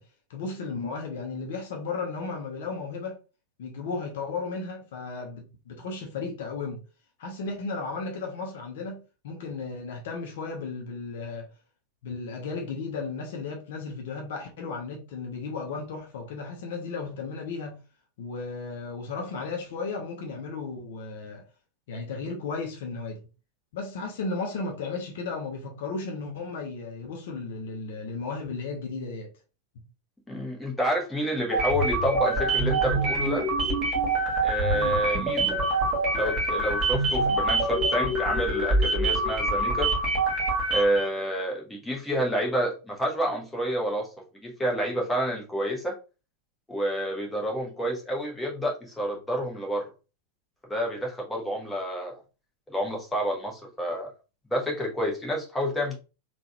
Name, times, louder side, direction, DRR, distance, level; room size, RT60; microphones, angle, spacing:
voice 1, 0.3-3.2 3.6-6.8 7.2-11.5 12.0-17.8 18.2-21.5 21.9-23.2 23.7-29.3 34.7-35.1, left 4 dB, 55° left, 0.8 m, -34 dB
voice 2, 30.3-33.5 34.4-35.6 36.1-39.9 40.7-44.1 44.4-46.0 46.7-49.8 50.7-52.2 52.7-54.1 54.5-56.0, equal, 5° left, 1.2 m, -29 dB
sound 1, 31.5-41.1, right 2 dB, 25° right, 1.6 m, -25 dB
3.7 x 2.4 x 2.8 m
figure-of-eight pair, 90°, 0 cm